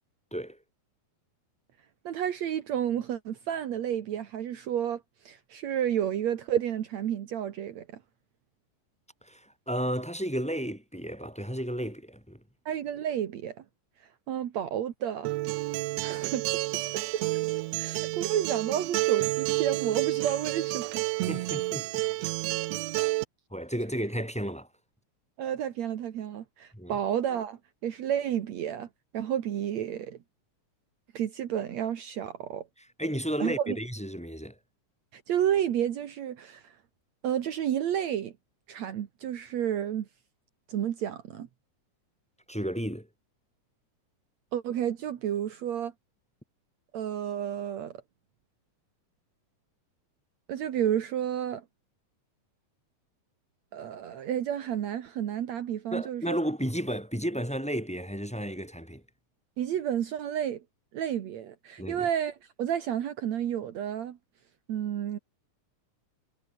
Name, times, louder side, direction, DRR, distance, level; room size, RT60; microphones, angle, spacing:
voice 1, 2.0-7.9 12.7-13.6 14.3-15.4 16.0-16.5 16.9-17.2 17.8-21.0 25.4-28.9 29.1-30.2 31.1-32.7 33.4-33.8 35.1-36.7 37.2-38.3 38.7-40.1 40.7-41.5 44.5-45.9 46.9-48.0 50.5-51.6 53.7-56.4 59.6-60.6 60.9-64.2 64.7-65.2, right 10 dB, 65° right, 2.6 m, -31 dB
voice 2, 9.2-12.4 21.3-22.3 23.5-24.7 26.7-27.0 32.8-34.6 42.5-43.1 55.9-59.0 61.8-62.1, equal, ahead, 5.5 m, -33 dB
Acoustic guitar, 15.2-23.2, right 19 dB, 80° right, 1.5 m, -30 dB
omnidirectional pair, 3.5 m